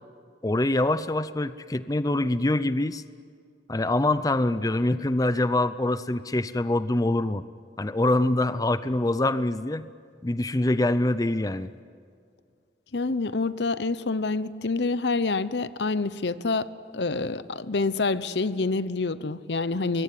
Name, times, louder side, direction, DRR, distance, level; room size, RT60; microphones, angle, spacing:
voice 1, 0.4-3.0 3.7-7.4 7.8-9.9 10.2-11.7, left 1 dB, 20° left, 14 dB, 0.6 m, -24 dB
voice 2, 12.9-16.7 16.9-20.0, left 3 dB, 75° left, 15 dB, 0.8 m, -27 dB
25.5 x 22.0 x 10.0 m, 2.2 s
head